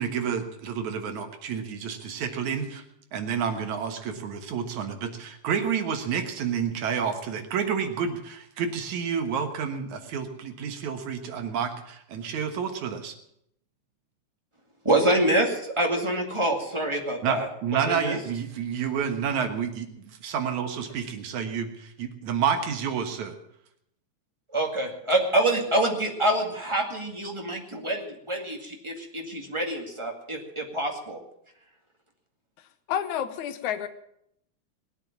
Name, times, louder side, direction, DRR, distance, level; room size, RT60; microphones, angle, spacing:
voice 1, 0.0-2.8 3.1-13.1 17.2-23.4, right 7 dB, 70° right, 6 dB, 2.7 m, -29 dB
voice 2, 14.8-18.2 24.5-31.2, right 1 dB, 10° right, 1 dB, 1.6 m, -26 dB
voice 3, 32.9-33.9, left 10 dB, 75° left, 11 dB, 2.2 m, -29 dB
19.5 x 8.9 x 7.2 m, 0.74 s
omnidirectional pair, 3.5 m